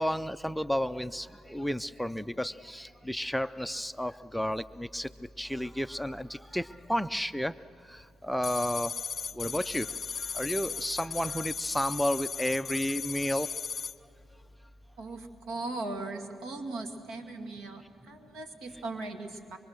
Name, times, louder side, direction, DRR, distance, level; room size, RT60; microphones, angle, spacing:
voice 1, 0.0-5.1 5.4-7.5 8.2-8.9 9.4-9.9 10.3-13.5, equal, ahead, 11 dB, 0.4 m, -32 dB
sound 1, 8.4-14.0, left 6 dB, 40° left, 0.6 m, -36 dB
voice 2, 15.0-19.6, right 2 dB, 80° right, 4 dB, 2.2 m, -38 dB
25.0 x 23.0 x 6.4 m, 2.7 s
cardioid pair, 90°, 0 cm